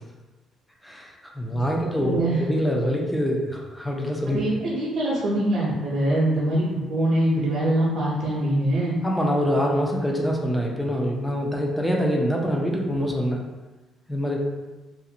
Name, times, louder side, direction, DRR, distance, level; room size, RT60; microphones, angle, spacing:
voice 1, 0.8-4.4 9.0-13.4 14.1-14.4, equal, 5° left, -1 dB, 0.4 m, -25 dB
voice 2, 1.5-2.5 4.3-9.0, right 1 dB, 55° right, -8 dB, 0.6 m, -24 dB
2.4 x 2.4 x 2.8 m, 1.2 s
cardioid pair, 130°, 0 cm